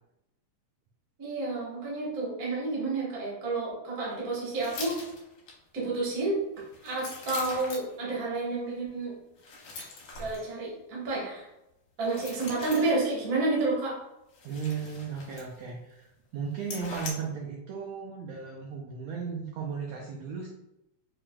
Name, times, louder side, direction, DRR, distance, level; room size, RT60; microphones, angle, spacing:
voice 1, 1.2-4.9 5.7-6.4 6.8-9.1 10.2-11.5 12.0-13.9, right 3 dB, 55° right, -5 dB, 0.9 m, -30 dB
sound 1, 4.5-5.5 6.6-8.0 9.4-10.5 12.0-13.1 14.3-15.7 16.0-16.1 16.6-17.1, left 3 dB, 75° left, 1.2 m, -42 dB
voice 2, 14.4-20.5, right 6 dB, 80° right, -2 dB, 1.5 m, -36 dB
5.6 x 2.4 x 2.2 m, 0.89 s
omnidirectional pair, 3.4 m